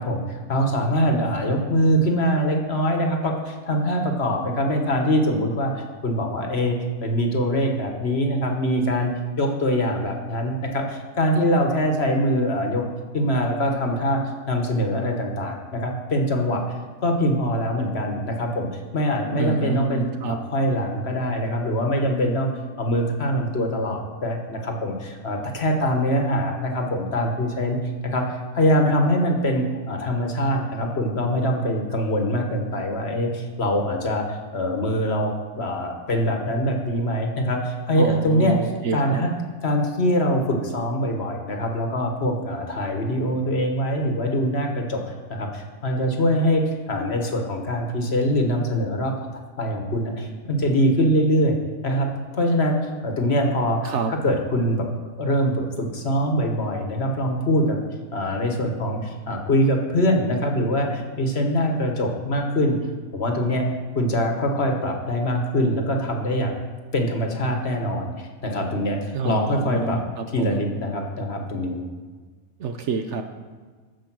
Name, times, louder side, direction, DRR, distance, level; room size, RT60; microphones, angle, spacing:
voice 1, 0.0-9.1 9.4-12.8 13.1-16.6 17.0-22.5 22.8-27.8 28.0-38.6 38.9-39.3 39.6-49.3 49.6-51.6 51.8-52.1 52.3-54.9 55.2-57.8 58.1-62.8 63.1-63.7 63.9-66.6 66.9-70.0 70.3-71.8, equal, 50° left, 3 dB, 1.4 m, -23 dB
voice 2, 19.3-20.4 38.0-39.2 53.8-54.1 69.1-70.6 72.6-73.2, right 5 dB, 60° right, 6 dB, 0.9 m, -28 dB
14.5 x 5.0 x 6.0 m, 1.5 s
omnidirectional pair, 1.5 m